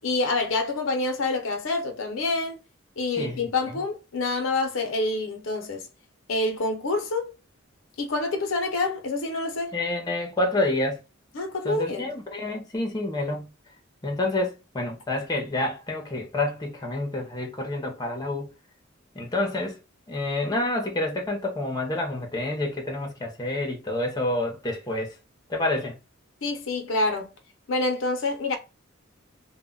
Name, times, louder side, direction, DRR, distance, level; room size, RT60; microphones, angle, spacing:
voice 1, 0.0-2.6 3.0-5.8 6.3-7.3 8.0-9.7 11.3-12.1 26.4-27.3 27.7-28.6, left 2 dB, 75° left, 0.6 m, -27 dB
voice 2, 3.2-3.5 9.7-11.0 11.6-13.5 14.0-18.5 19.1-19.8 20.1-25.1 25.5-26.0, left 2 dB, 20° left, 0.6 m, -28 dB
2.1 x 2.1 x 3.6 m
head